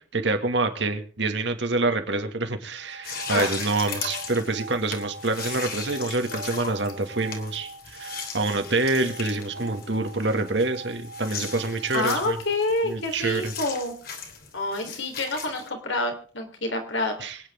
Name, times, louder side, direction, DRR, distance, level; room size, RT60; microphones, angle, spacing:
voice 1, 0.1-12.4 12.8-13.5 17.2-17.4, right 2 dB, 65° right, 6 dB, 2.1 m, -26 dB
sound 1, 2.7-12.9, right 3 dB, 85° right, 1.9 m, -43 dB
sound 2, 3.0-15.7, left 5 dB, 50° left, 2.9 m, -38 dB
voice 2, 11.9-13.9 14.5-17.2, left 2 dB, 75° left, 4 dB, 3.6 m, -27 dB
25.5 x 9.6 x 3.6 m, 0.43 s
head